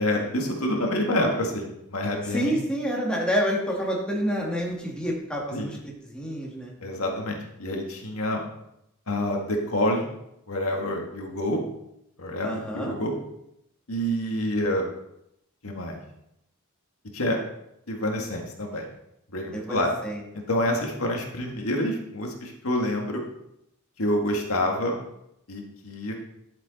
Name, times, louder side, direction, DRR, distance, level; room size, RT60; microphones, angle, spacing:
voice 1, 0.0-2.6 5.5-5.7 6.8-8.4 9.1-10.1 10.5-11.6 12.2-13.1 13.9-14.9 15.6-16.0 17.1-17.4 17.9-18.9 19.3-19.9 20.3-23.2 24.0-25.0 25.5-26.2, left 1 dB, 85° left, 1 dB, 1.9 m, -27 dB
voice 2, 2.3-6.7 12.4-13.0 19.5-20.2, equal, 5° left, -3 dB, 2.3 m, -28 dB
11.5 x 7.4 x 4.1 m, 0.80 s
head